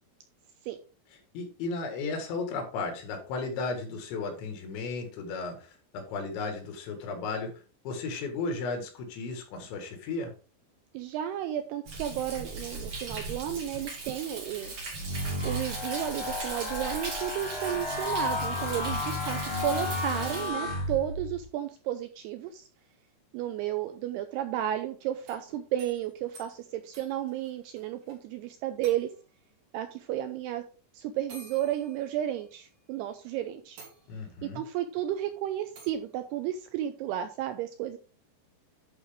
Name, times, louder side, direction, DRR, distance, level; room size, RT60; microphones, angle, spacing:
voice 1, 1.3-7.5 7.9-10.3 34.1-34.6, left 3 dB, 80° left, 4 dB, 4.1 m, -34 dB
voice 2, 10.9-14.7 15.4-22.6 23.3-29.1 29.7-30.6 30.9-33.8 34.4-38.0, right 11 dB, 85° right, 8 dB, 2.4 m, -33 dB
Thunder, 11.9-20.5, right 3 dB, 40° right, 2.5 m, -39 dB
sound 1, 14.9-21.4, left 2 dB, 35° left, 2.8 m, -33 dB
sound 2, 25.1-28.2 28.4-28.5 28.8-29.4 30.5-30.6 31.3-32.7 33.2-33.3 33.8-34.5 35.8-36.1, right 3 dB, 70° right, 4.9 m, -52 dB
11.0 x 4.8 x 3.5 m, 0.37 s
omnidirectional pair, 5.2 m